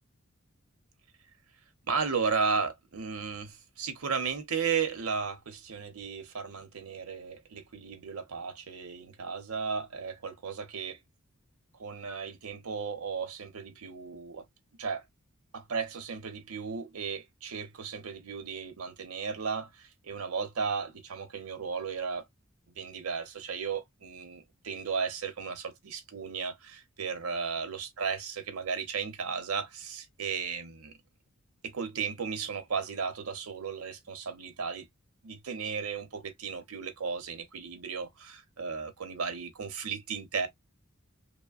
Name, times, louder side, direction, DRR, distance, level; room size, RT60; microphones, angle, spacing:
voice 1, 1.9-11.0 11.8-14.4 14.8-15.0 15.5-22.2 22.8-30.9 31.6-34.9 35.2-40.5, right 5 dB, 90° right, 0.7 m, -35 dB
2.9 x 2.2 x 2.3 m
head